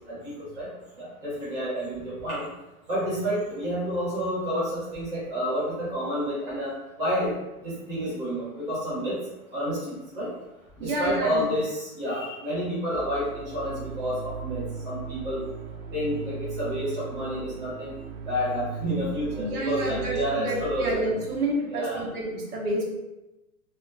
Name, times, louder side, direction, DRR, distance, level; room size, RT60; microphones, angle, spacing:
voice 1, 1.0-2.5 2.9-7.3 7.6-9.2 9.5-10.3 10.8-15.4 15.9-17.9 18.3-21.0 21.7-22.0, equal, 10° right, -12 dB, 0.9 m, -29 dB
voice 2, 10.8-11.4 19.4-22.8, right 1 dB, 80° right, -2 dB, 1.2 m, -29 dB
sound 1, 12.9-21.3, right 6 dB, 60° right, 0.5 m, -38 dB
4.3 x 2.3 x 2.6 m, 0.99 s
hypercardioid pair, 175°, 45 cm